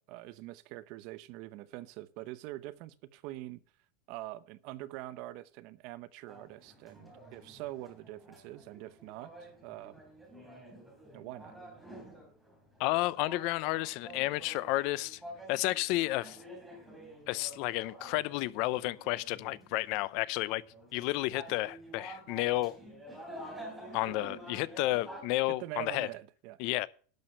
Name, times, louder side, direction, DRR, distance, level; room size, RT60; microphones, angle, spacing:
voice 1, 0.0-3.6 4.1-9.9 11.1-11.5 25.5-26.6, right 16 dB, 50° right, 0.7 m, -44 dB
sound 1, 6.3-25.2, right 1 dB, 5° right, 3.3 m, -50 dB
voice 2, 12.8-15.2 15.5-16.4 17.3-20.6 20.9-22.8 23.9-26.1 26.6-26.9, left 19 dB, 50° left, 0.6 m, -31 dB
11.5 x 6.3 x 6.6 m
supercardioid pair, 155°, 0 cm